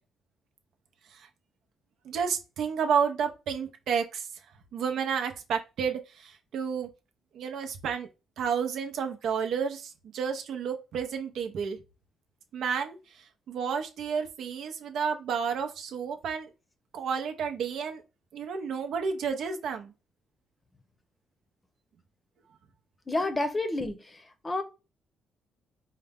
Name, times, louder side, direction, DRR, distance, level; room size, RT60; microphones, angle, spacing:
voice 1, 2.0-4.3 4.7-6.9 7.3-8.1 8.4-11.8 12.5-13.0 13.5-16.5 16.9-18.0 18.3-19.9, right 6 dB, 75° right, 0.6 m, -31 dB
voice 2, 23.1-24.0 24.4-24.6, left 2 dB, 25° left, 0.7 m, -28 dB
4.7 x 2.1 x 3.5 m
cardioid pair, 90°, 0 cm